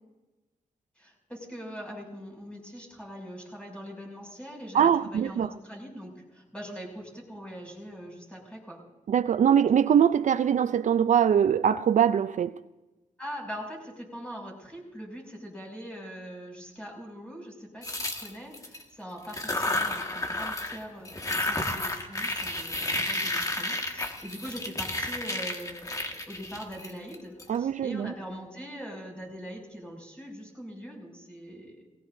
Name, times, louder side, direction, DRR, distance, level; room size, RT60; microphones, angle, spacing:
voice 1, 0.9-8.8 13.2-31.9, equal, 10° left, 6.6 m, -42 dB
voice 2, 4.7-5.5 9.1-12.6 27.5-28.1, right 8 dB, 65° right, 0.4 m, -22 dB
sound 1, 17.8-18.8 19.2-20.8 21.0-27.4, left 2 dB, 25° left, 1.8 m, -31 dB
20.5 x 17.5 x 2.7 m
cardioid pair, 95°, 14 cm